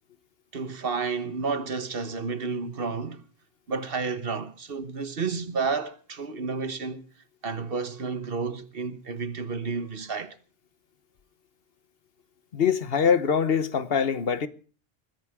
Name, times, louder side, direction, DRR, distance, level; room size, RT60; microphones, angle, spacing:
voice 1, 0.5-3.2 3.7-7.1 7.4-10.4, right 4 dB, 60° right, 1.4 m, -31 dB
voice 2, 12.5-14.5, left 7 dB, 65° left, 1.2 m, -23 dB
21.0 x 16.0 x 3.6 m
omnidirectional pair, 1.1 m